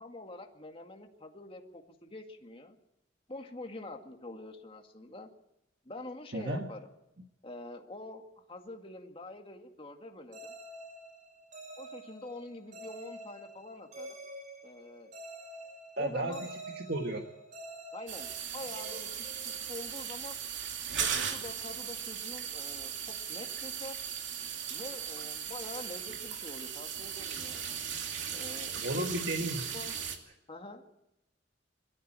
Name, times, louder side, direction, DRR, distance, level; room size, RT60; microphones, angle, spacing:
voice 1, 0.0-2.8 3.3-5.3 5.8-6.9 7.4-10.5 11.8-14.2 14.6-15.1 16.0-16.5 17.9-20.4 21.0-24.0 24.7-27.8 28.3-28.9 29.7-30.0 30.5-30.8, left 2 dB, 30° left, 3 dB, 2.1 m, -46 dB
voice 2, 6.3-6.7 16.0-16.4 16.7-17.2 28.8-29.7, right 1 dB, 60° right, 3 dB, 1.7 m, -33 dB
sound 1, 10.3-20.1, right 1 dB, 40° right, 6.3 m, -48 dB
sound 2, 18.1-30.2, right 8 dB, 80° right, 2.6 m, -37 dB
22.0 x 13.5 x 9.1 m, 0.88 s
head